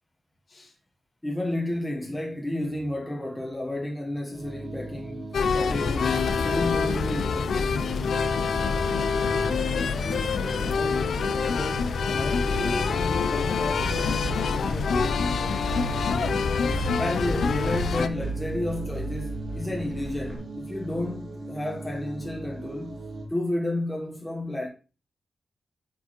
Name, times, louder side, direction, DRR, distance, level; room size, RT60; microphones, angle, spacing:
voice 1, 1.2-7.6 17.0-23.0 23.3-24.7, left 1 dB, 10° left, 1.0 m, -31 dB
sound 1, 4.3-23.3, right 3 dB, 65° right, 1.9 m, -39 dB
sound 2, 5.3-18.1, left 5 dB, 80° left, 0.4 m, -26 dB
voice 2, 8.5-9.9 10.4-14.2 14.5-15.3, left 1 dB, 45° left, 1.7 m, -38 dB
sound 3, 13.8-20.4, right 2 dB, 85° right, 2.1 m, -35 dB
8.2 x 4.5 x 3.0 m
wide cardioid pair, 100°, 0 cm